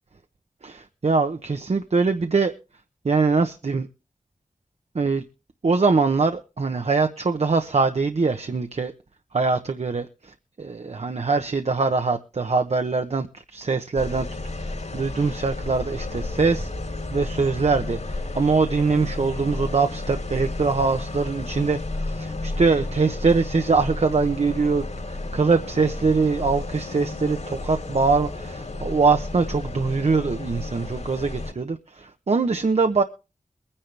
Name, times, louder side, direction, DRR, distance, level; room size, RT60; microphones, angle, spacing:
voice 1, 0.6-2.5 3.0-3.9 4.9-5.2 5.6-8.9 9.3-14.3 14.6-16.7 17.1-33.0, right 4 dB, 55° right, 0.9 m, -23 dB
sound 1, 14.0-31.5, left 2 dB, 65° left, 3.3 m, -32 dB
22.5 x 10.0 x 3.4 m
wide cardioid pair, 65°, 13 cm